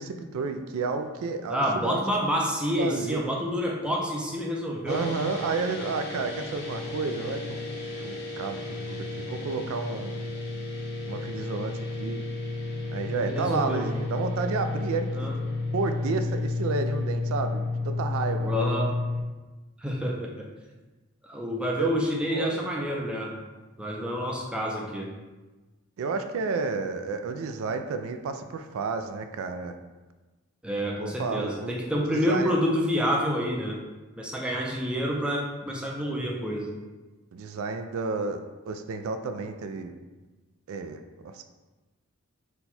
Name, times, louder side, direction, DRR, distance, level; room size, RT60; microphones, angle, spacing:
voice 1, 0.0-2.0 2.8-3.2 4.9-7.6 8.0-10.2 11.1-12.2 12.9-15.3 15.7-18.5 21.8-21.9 22.3-22.9 26.0-29.8 30.8-32.6 37.3-39.9 40.7-41.4, right 4 dB, 75° right, 8 dB, 0.3 m, -31 dB
voice 2, 1.5-5.2 13.1-13.9 15.1-15.3 18.4-19.0 19.8-20.3 21.2-23.4 23.8-25.1 30.6-33.9 34.2-36.7, equal, 5° right, -2 dB, 0.4 m, -28 dB
sound 1, 4.9-19.2, left 3 dB, 50° left, 0.6 m, -32 dB
4.3 x 2.2 x 4.1 m, 1.2 s
head